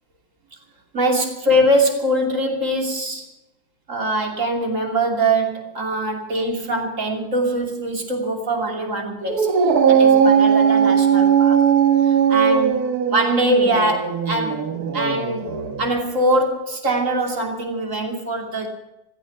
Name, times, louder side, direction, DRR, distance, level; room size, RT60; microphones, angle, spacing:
voice 1, 0.9-3.3 3.9-9.5 9.9-11.6 12.0-14.7 14.9-15.5 15.8-18.7, right 1 dB, 45° right, 1 dB, 3.2 m, -22 dB
Dog, 9.3-15.9, right 7 dB, 60° right, 1.7 m, -18 dB
16.0 x 15.5 x 5.8 m, 0.90 s
omnidirectional pair, 1.9 m